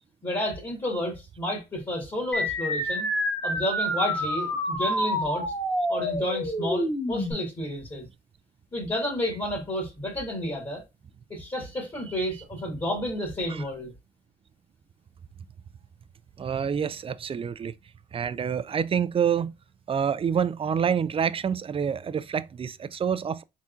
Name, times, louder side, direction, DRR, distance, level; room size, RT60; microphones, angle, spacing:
voice 1, 0.2-3.1 3.4-5.5 5.9-8.1 8.7-10.8 11.3-13.9, left 1 dB, 25° left, 1.7 m, -31 dB
sound 1, 2.3-7.3, equal, 10° left, 1.2 m, -28 dB
voice 2, 16.4-17.7 18.1-19.5 19.9-23.4, right 7 dB, 30° right, 0.3 m, -27 dB
4.1 x 3.5 x 2.5 m
cardioid pair, 90°, 20 cm